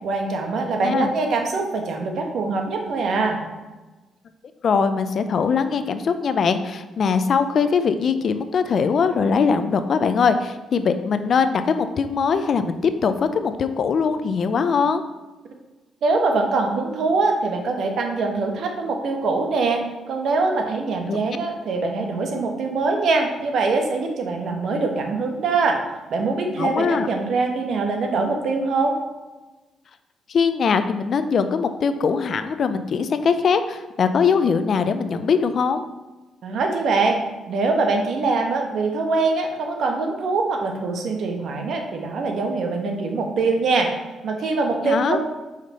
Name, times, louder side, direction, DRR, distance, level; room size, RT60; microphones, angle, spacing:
voice 1, 0.0-3.4 16.0-19.8 20.1-25.8 26.1-29.0 36.4-37.2 37.5-43.9 44.2-45.2, right 3 dB, 65° right, 3 dB, 1.1 m, -23 dB
voice 2, 0.8-1.1 4.6-15.0 21.1-21.2 26.6-27.1 30.3-35.8 44.8-45.2, left 5 dB, 55° left, 10 dB, 0.5 m, -21 dB
5.3 x 5.0 x 4.1 m, 1.2 s
cardioid pair, 90°, 0 cm